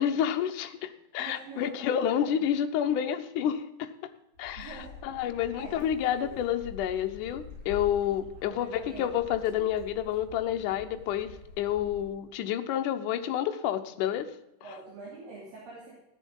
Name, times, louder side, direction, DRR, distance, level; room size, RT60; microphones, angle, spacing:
voice 1, 0.0-3.9 4.4-14.3, left 10 dB, 70° left, 7 dB, 2.0 m, -29 dB
voice 2, 1.2-2.4 4.6-4.9 5.5-6.3 8.4-9.1 14.6-15.9, right 4 dB, 60° right, -5 dB, 4.5 m, -46 dB
sound 1, 4.3-12.0, left 4 dB, 25° left, 7.1 m, -47 dB
14.5 x 10.5 x 5.5 m, 0.87 s
omnidirectional pair, 4.6 m